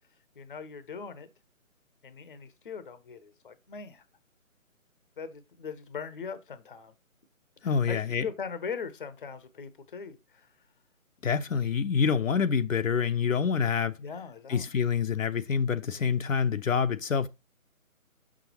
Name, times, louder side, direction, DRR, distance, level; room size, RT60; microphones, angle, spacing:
voice 1, 0.4-1.3 2.0-4.0 5.2-6.9 7.6-10.5 14.0-14.7, left 6 dB, 40° left, 0.8 m, -40 dB
voice 2, 7.6-8.3 11.2-13.9 14.5-17.3, left 6 dB, 65° left, 0.8 m, -26 dB
6.2 x 6.1 x 2.9 m
figure-of-eight pair, 160°, 42 cm